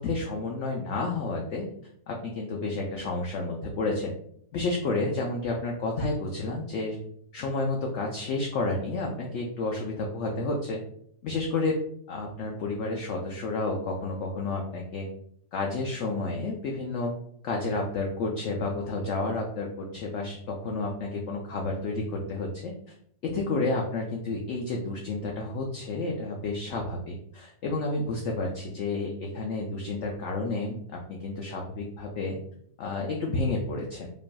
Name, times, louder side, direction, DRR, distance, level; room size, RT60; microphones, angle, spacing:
voice 1, 0.0-1.7 2.1-4.1 4.5-7.0 7.3-10.8 11.2-11.8 12.1-15.1 15.5-17.1 17.4-22.9 23.2-32.4 32.8-34.1, left 3 dB, 70° left, 0 dB, 0.7 m, -30 dB
5.2 x 2.5 x 2.2 m, 0.68 s
omnidirectional pair, 1.7 m